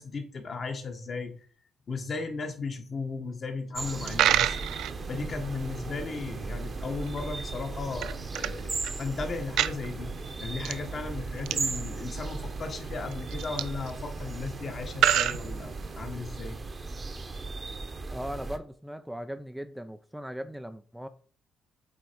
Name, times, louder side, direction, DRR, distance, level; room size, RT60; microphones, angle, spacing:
voice 1, 0.0-1.3 1.9-4.6 5.1-10.1 10.4-16.6, left 4 dB, 45° left, 1.5 m, -36 dB
sound 1, 3.7-18.6, right 3 dB, 30° right, 1.0 m, -37 dB
Coin (dropping), 3.9-16.2, right 12 dB, 85° right, 0.3 m, -32 dB
voice 2, 18.1-21.1, equal, 5° right, 0.5 m, -38 dB
8.3 x 3.2 x 4.6 m
cardioid pair, 90°, 0 cm